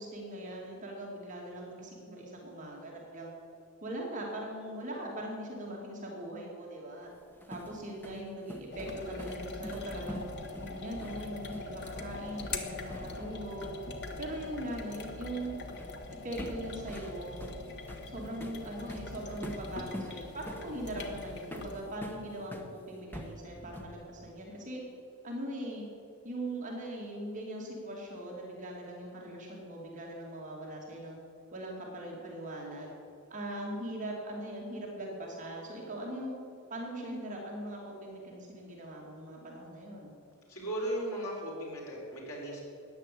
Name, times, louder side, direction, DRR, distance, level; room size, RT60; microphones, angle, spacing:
voice 1, 0.0-3.3 3.8-7.1 7.5-10.3 10.6-13.7 14.2-15.6 16.1-17.4 18.1-24.8 25.2-25.9 26.2-31.2 31.5-32.9 33.3-36.4 36.7-40.1, right 1 dB, 35° right, -2 dB, 2.4 m, -40 dB
sound 1, 7.1-13.4 13.6-13.8 15.8-16.0 16.4-22.7 23.1-24.0, equal, 10° left, 1.1 m, -44 dB
sound 2, 8.7-21.8, left 3 dB, 55° left, 1.4 m, -42 dB
voice 2, 40.5-42.6, right 1 dB, 85° left, -2 dB, 4.5 m, -36 dB
13.5 x 9.8 x 8.4 m, 2.7 s
head